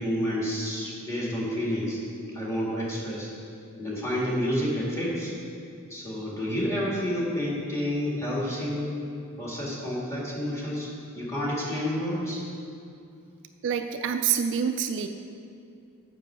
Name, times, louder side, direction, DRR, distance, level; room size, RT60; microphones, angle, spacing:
voice 1, 0.0-2.0 2.3-3.3 3.8-5.3 5.9-8.9 9.4-10.9 11.1-12.4, equal, 15° left, -6 dB, 1.8 m, -29 dB
voice 2, 13.6-15.1, right 7 dB, 55° right, 7 dB, 0.3 m, -26 dB
7.5 x 5.5 x 6.6 m, 2.5 s
head